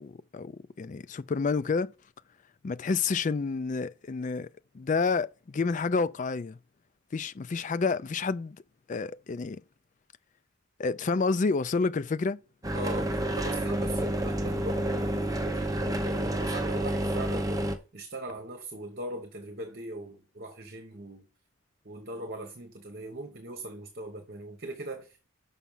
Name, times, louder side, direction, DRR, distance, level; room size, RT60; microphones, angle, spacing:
voice 1, 0.0-1.9 2.6-4.5 4.7-6.6 7.1-8.6 8.9-9.6 10.8-12.4, left 4 dB, 35° left, 0.4 m, -29 dB
sound 1, 12.6-17.8, right 1 dB, 15° right, 0.8 m, -29 dB
voice 2, 12.7-21.3 21.8-25.3, right 1 dB, 50° right, 1.1 m, -40 dB
6.0 x 5.6 x 5.5 m
head